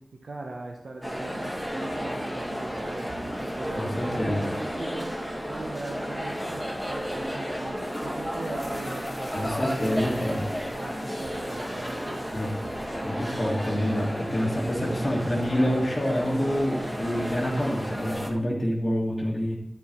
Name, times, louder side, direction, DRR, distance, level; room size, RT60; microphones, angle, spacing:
voice 1, 0.2-12.8, right 2 dB, 80° right, 1 dB, 1.0 m, -40 dB
sound 1, 1.0-18.3, equal, 5° right, 1.9 m, -33 dB
voice 2, 3.7-4.5 9.3-10.4 12.3-12.5 13.0-19.5, equal, 35° left, -6 dB, 1.7 m, -27 dB
sound 2, 5.7-6.0 6.2-6.3 7.4-7.5 7.8-17.1, left 1 dB, 10° left, 3.0 m, -43 dB
10.5 x 4.8 x 6.0 m, 0.81 s
wide cardioid pair, 65°, 0 cm